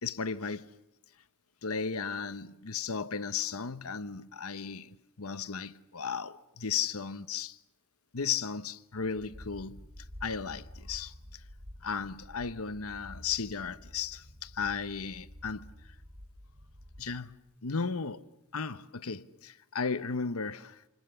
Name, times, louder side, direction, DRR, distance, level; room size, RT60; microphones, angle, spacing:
voice 1, 0.0-0.7 1.6-7.6 8.1-9.8 10.2-11.4 11.8-15.7 17.0-17.3 17.6-18.2 18.5-20.8, left 6 dB, 70° left, 1.0 m, -35 dB
sound 1, 8.9-17.3, equal, 55° right, 4.6 m, -50 dB
29.5 x 27.5 x 7.0 m
head